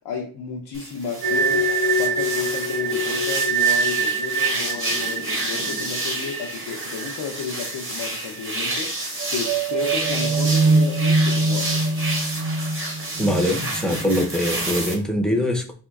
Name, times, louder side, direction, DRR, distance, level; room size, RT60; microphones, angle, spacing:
voice 1, 0.0-1.7 2.0-8.9 9.3-11.8, left 5 dB, 85° left, 0.6 m, -32 dB
sound 1, 0.7-14.9, right 1 dB, 30° right, 1.0 m, -30 dB
sound 2, 1.2-8.1 8.3-8.5 9.0-14.4, right 3 dB, 60° right, 0.5 m, -23 dB
voice 2, 13.2-15.7, equal, ahead, 0.5 m, -23 dB
4.2 x 2.2 x 2.3 m
cardioid pair, 80°, 39 cm